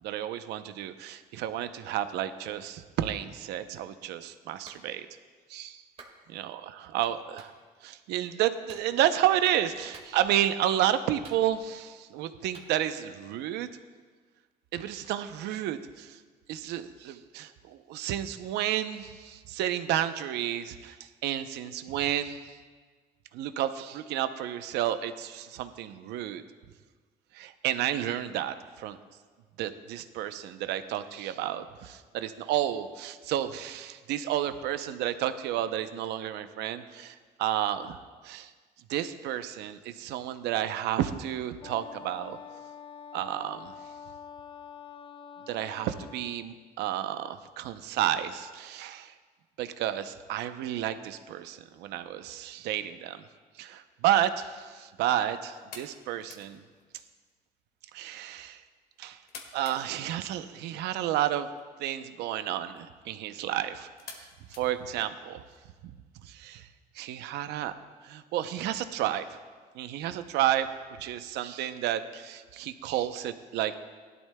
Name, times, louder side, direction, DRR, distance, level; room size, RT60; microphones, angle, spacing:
voice 1, 0.0-5.1 5.5-5.8 6.3-7.5 7.8-13.7 14.7-16.2 16.5-22.4 23.3-26.4 27.3-29.0 29.6-38.5 38.9-42.4 43.1-43.7 45.5-49.1 49.6-53.2 53.6-56.6 57.9-58.6 59.0-59.2 59.5-61.5 61.8-63.9 64.2-65.4 65.8-65.9 66.2-66.7 66.9-67.7 68.0-69.2 69.7-70.7 71.0-73.8, right 12 dB, 85° right, 10 dB, 0.7 m, -31 dB
Clapping, 4.6-4.8 6.0-6.2 7.4-7.5 8.7-8.9 9.9-10.4 11.2-11.8 12.5-12.7, right 4 dB, 35° right, 1.9 m, -51 dB
Wind instrument woodwind instrument, 41.6-46.5, left 7 dB, 30° left, 0.5 m, -46 dB
sound 1, 54.2-65.6, left 5 dB, 65° left, 1.8 m, -53 dB
17.5 x 12.0 x 2.2 m, 1.5 s
cardioid pair, 110°, 17 cm